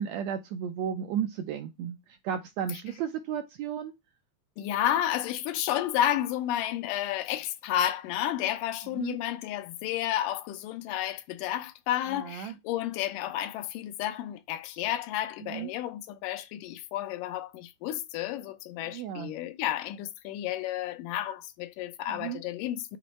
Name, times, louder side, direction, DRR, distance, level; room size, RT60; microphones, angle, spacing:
voice 1, 0.0-3.9 8.9-9.2 12.1-12.6 15.4-15.7 18.8-19.3 22.1-22.4, right 8 dB, 80° right, 1.6 m, -34 dB
voice 2, 4.6-23.0, left 12 dB, 90° left, 2.3 m, -31 dB
8.4 x 3.1 x 4.1 m
omnidirectional pair, 3.7 m